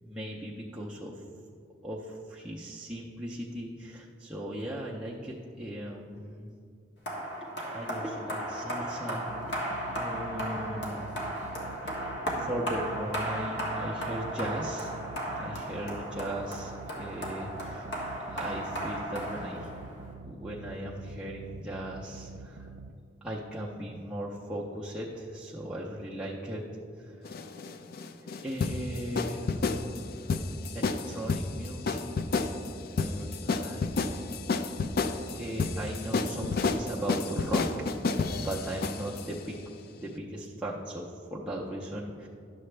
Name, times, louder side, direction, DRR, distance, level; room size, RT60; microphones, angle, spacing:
voice 1, 0.0-1.2 1.8-6.5 7.4-9.6 9.9-11.0 11.3-11.4 11.8-14.9 15.4-17.9 18.3-19.7 20.2-22.7 23.2-26.6 27.0-27.5 28.4-29.8 30.7-32.5 33.0-34.2 35.3-37.9 38.2-39.6 40.0-42.3, right 1 dB, 5° right, -6 dB, 0.5 m, -38 dB
sound 1, 7.1-20.1, right 1 dB, 70° left, 1.5 m, -35 dB
sound 2, 9.3-22.9, right 3 dB, 60° right, 0.4 m, -46 dB
sound 3, 27.2-39.3, left 4 dB, 55° left, 0.4 m, -30 dB
11.0 x 6.9 x 3.2 m, 2.5 s
head